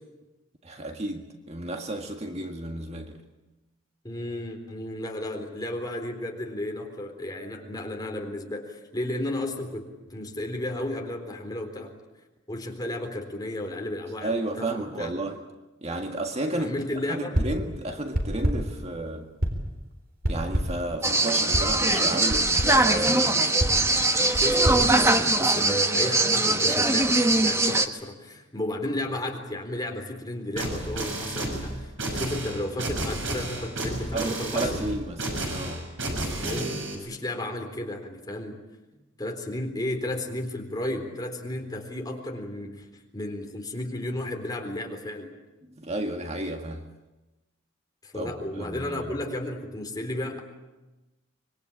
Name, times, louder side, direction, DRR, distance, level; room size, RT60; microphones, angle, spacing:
voice 1, 0.6-3.2 14.2-15.4 15.8-16.7 17.1-19.3 20.3-23.5 34.1-35.9 45.7-46.9 48.1-49.1, right 2 dB, 35° right, 4 dB, 1.7 m, -32 dB
voice 2, 4.0-11.9 12.5-15.1 16.6-17.4 24.2-35.0 36.4-38.6 39.2-42.9 43.1-45.3 48.0-50.4, left 1 dB, 20° left, 2 dB, 4.0 m, -33 dB
sound 1, 17.3-17.7 18.1-18.8 19.4-19.8 20.2-20.9 21.5-21.8 22.3-22.8 23.6-25.7, equal, 50° right, 4.0 m, -28 dB
sound 2, 21.0-27.9, right 2 dB, 15° right, 1.3 m, -22 dB
sound 3, 30.6-37.0, right 1 dB, 75° right, 7.0 m, -31 dB
25.5 x 22.5 x 8.6 m, 1.1 s
head